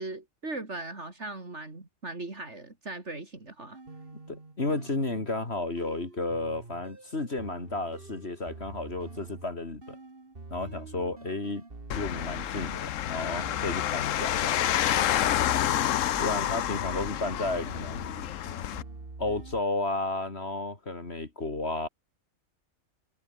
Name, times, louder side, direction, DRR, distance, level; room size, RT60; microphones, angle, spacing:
voice 1, 0.0-3.8, right 2 dB, 60° right, 3.9 m, -39 dB
sound 1, 3.7-12.9 13.3-14.7 14.9-19.6, right 3 dB, 45° right, 3.0 m, -46 dB
voice 2, 4.3-10.0 10.5-11.6 11.9-14.5 16.2-18.1 19.2-21.9, left 2 dB, 55° left, 3.4 m, -32 dB
sound 2, 11.9-18.8, left 12 dB, 80° left, 1.1 m, -29 dB
omnidirectional pair, 1.3 m